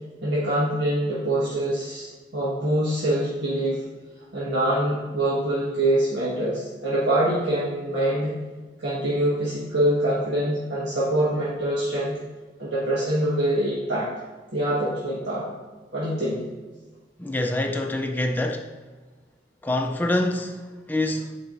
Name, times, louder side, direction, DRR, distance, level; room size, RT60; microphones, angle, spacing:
voice 1, 0.2-2.1 2.3-3.8 4.3-8.3 8.8-12.2 12.6-14.1 14.5-15.5 15.9-16.4, right 1 dB, 80° right, -8 dB, 1.5 m, -24 dB
voice 2, 17.2-18.7 19.6-21.4, left 1 dB, 10° left, 3 dB, 0.4 m, -26 dB
8.7 x 4.7 x 2.6 m, 1.3 s
head